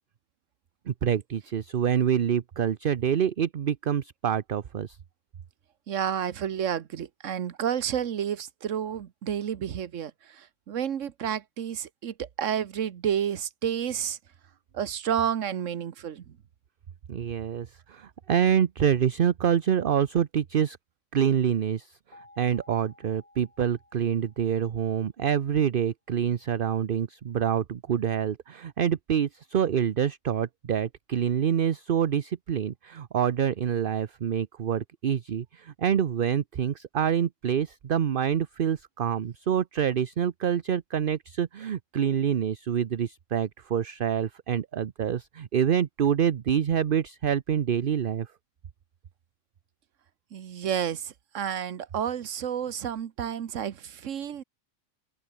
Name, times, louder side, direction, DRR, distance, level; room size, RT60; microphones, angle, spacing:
voice 1, 0.9-5.0 17.1-20.8 21.1-21.9 22.4-48.3, right 8 dB, 50° right, 0.9 m, -26 dB
voice 2, 5.9-14.2 14.7-16.4 50.3-54.4, right 9 dB, 90° right, 1.3 m, -30 dB
sound 1, 22.1-25.1, left 2 dB, 55° left, 5.0 m, -57 dB
open air
omnidirectional pair, 1.3 m